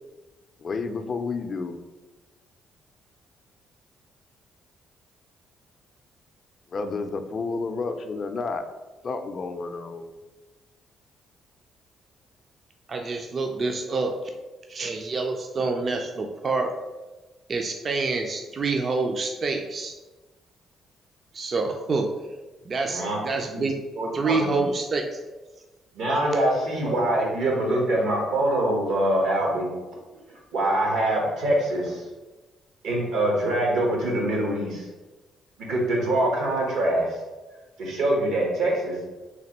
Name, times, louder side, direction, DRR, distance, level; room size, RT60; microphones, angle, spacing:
voice 1, 0.6-1.8 6.7-8.6 9.0-10.1, left 4 dB, 45° left, 7 dB, 0.4 m, -30 dB
voice 2, 12.9-14.1 14.7-16.7 17.5-19.9 21.3-22.1 22.6-23.8 24.1-25.2, right 3 dB, 45° right, 3 dB, 0.3 m, -27 dB
voice 3, 24.0-24.6 25.9-29.7 30.5-32.0 32.8-34.9 35.7-37.2 37.8-38.9, right 1 dB, 90° right, -1 dB, 1.2 m, -24 dB
3.3 x 2.5 x 4.1 m, 1.2 s
cardioid pair, 90°, 0 cm